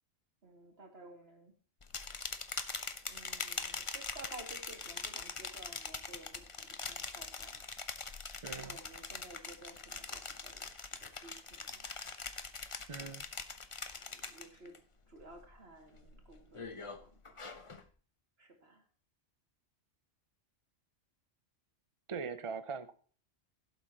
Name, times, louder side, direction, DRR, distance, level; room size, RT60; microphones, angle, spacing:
voice 1, 0.4-1.5 3.1-7.7 8.6-10.6 11.0-11.9 14.1-14.7 15.1-17.5 18.4-18.8, right 2 dB, 55° right, 3 dB, 2.5 m, -54 dB
sound 1, 1.8-14.8 15.1-15.5 16.0-17.8, left 4 dB, 30° left, 0.8 m, -43 dB
voice 2, 8.4-8.8 12.9-13.3 22.1-22.9, right 5 dB, 35° right, 11 dB, 0.6 m, -41 dB
16.5 x 7.9 x 2.9 m, 0.41 s
omnidirectional pair, 1.2 m